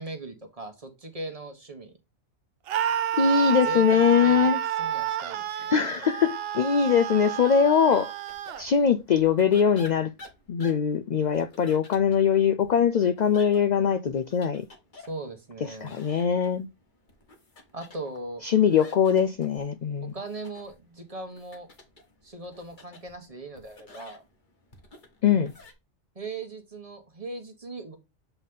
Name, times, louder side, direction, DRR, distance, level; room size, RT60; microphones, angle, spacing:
voice 1, 0.0-1.9 3.4-5.8 15.1-15.9 17.7-18.4 18.8-18.9 20.0-21.7 22.2-24.2 26.1-28.0, right 2 dB, 30° right, 1.3 m, -39 dB
Screaming, 2.7-8.6, right 10 dB, 65° right, 0.7 m, -29 dB
voice 2, 3.2-4.6 5.5-8.1 8.6-10.1 10.5-14.7 15.6-16.7 18.4-20.1 25.2-25.5, left 7 dB, 60° left, 0.4 m, -22 dB
sound 1, 8.3-25.7, left 2 dB, 45° left, 1.5 m, -52 dB
7.9 x 4.1 x 3.6 m
omnidirectional pair, 1.2 m